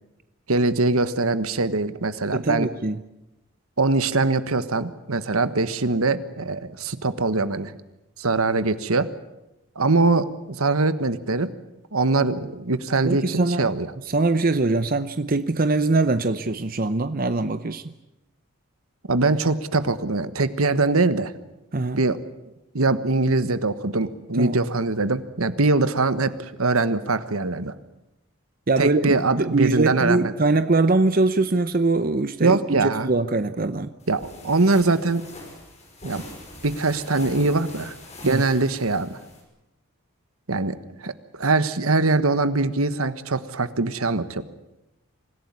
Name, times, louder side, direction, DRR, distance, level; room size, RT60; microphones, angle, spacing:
voice 1, 0.5-2.7 3.8-7.7 8.2-9.1 9.7-10.3 10.6-11.5 11.9-13.9 19.1-21.3 22.0-22.2 22.7-27.7 28.8-30.3 32.4-33.1 34.1-35.2 36.0-36.2 36.6-37.9 38.2-39.2 40.5-40.8 41.0-44.4, right 3 dB, 80° right, 13 dB, 1.4 m, -22 dB
voice 2, 2.3-3.0 13.0-13.7 14.1-17.8 21.7-22.0 24.4-24.5 28.7-33.9 38.2-38.4, right 3 dB, 40° right, 11 dB, 0.7 m, -22 dB
sound 1, 34.0-39.4, left 2 dB, 30° left, 5.8 m, -42 dB
25.5 x 16.0 x 9.6 m, 0.95 s
head